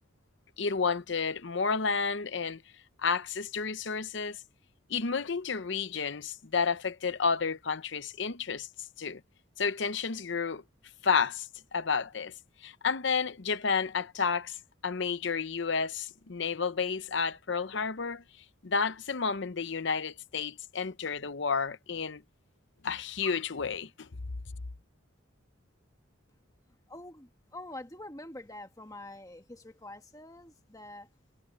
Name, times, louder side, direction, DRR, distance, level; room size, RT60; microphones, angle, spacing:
voice 1, 0.6-2.6 3.0-4.4 4.9-8.7 9.0-9.2 9.6-10.6 11.0-12.3 12.6-14.6 14.8-18.2 18.6-22.2 22.8-24.1, left 5 dB, 60° left, 0.7 m, -31 dB
voice 2, 26.9-31.1, left 1 dB, 15° left, 1.3 m, -46 dB
head